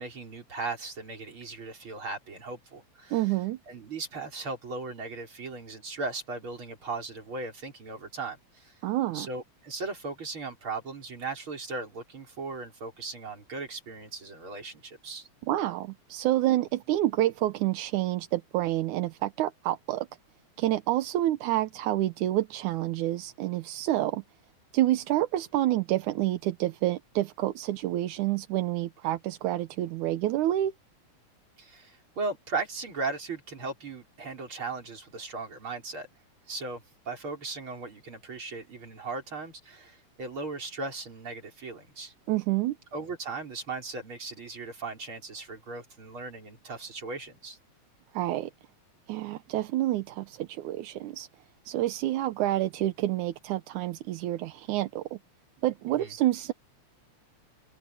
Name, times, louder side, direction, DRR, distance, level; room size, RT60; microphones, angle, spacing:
voice 1, 0.0-3.3 3.7-8.7 9.1-15.3 31.6-36.1 36.5-42.1 42.9-47.6 56.0-56.1, right 3 dB, 40° right, 5.6 m, -37 dB
voice 2, 3.1-3.6 8.8-9.3 15.5-20.1 20.6-24.2 24.7-30.7 42.3-42.8 48.1-48.5 49.1-51.3 51.7-55.2 55.6-56.5, right 14 dB, 85° right, 2.3 m, -28 dB
omnidirectional pair, 3.4 m